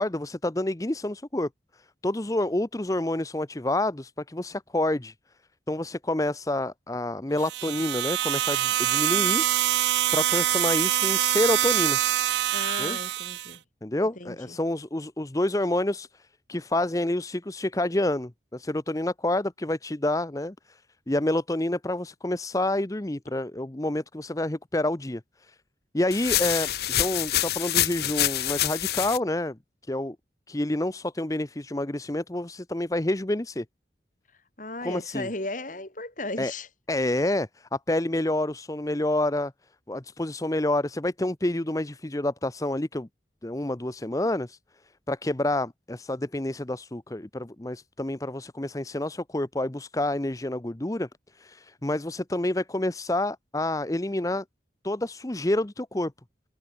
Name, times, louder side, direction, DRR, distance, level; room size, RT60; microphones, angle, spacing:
voice 1, 0.0-1.5 2.0-5.1 5.7-9.4 10.1-12.0 12.8-13.0 13.8-20.8 21.1-25.5 25.9-26.7 27.0-29.6 29.9-30.2 30.5-33.6 34.8-35.3 36.4-36.5 36.9-39.5 39.9-43.1 43.4-44.6 45.1-51.1 51.3-54.4 54.8-56.1, left 1 dB, 20° left, 0.8 m, -28 dB
sound 1, 7.4-13.5, right 13 dB, 75° right, 0.3 m, -25 dB
voice 2, 12.5-13.6 14.2-14.6 34.6-36.7, left 2 dB, 45° left, 3.6 m, -35 dB
sound 2, 26.1-29.2, left 12 dB, 60° left, 1.4 m, -26 dB
head